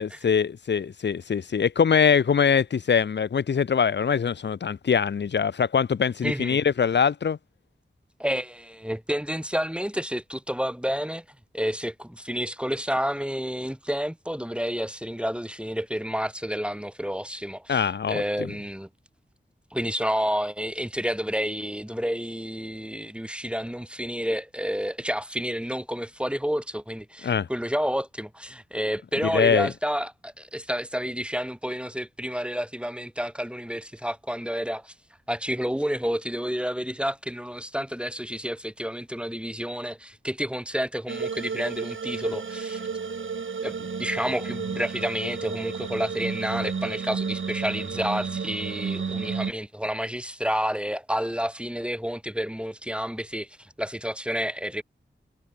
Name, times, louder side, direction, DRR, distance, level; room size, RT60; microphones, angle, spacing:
voice 1, 0.0-7.4 17.7-18.5 27.2-27.5 29.2-29.7, left 6 dB, 65° left, 0.6 m, -23 dB
voice 2, 6.2-6.6 8.2-11.2 11.5-18.9 19.7-34.9 35.3-42.8 43.6-54.8, equal, 5° right, 1.8 m, -30 dB
sound 1, 41.1-49.5, right 5 dB, 90° right, 2.1 m, -32 dB
wide cardioid pair, 50°, 20 cm